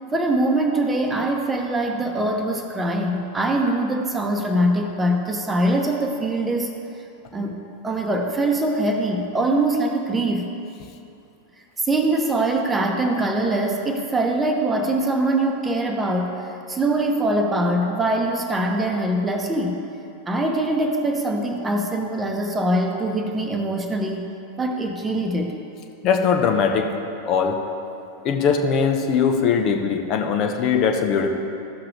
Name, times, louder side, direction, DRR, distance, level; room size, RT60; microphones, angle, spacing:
voice 1, 0.1-6.7 7.3-10.5 11.8-16.3 16.7-19.8 20.3-24.3 24.6-25.5, right 1 dB, 15° right, 3 dB, 1.0 m, -23 dB
voice 2, 26.0-26.9 27.3-27.5 28.2-31.3, left 6 dB, 40° left, 3 dB, 1.0 m, -20 dB
14.5 x 5.9 x 3.4 m, 2.7 s
figure-of-eight pair, 90°, 0 cm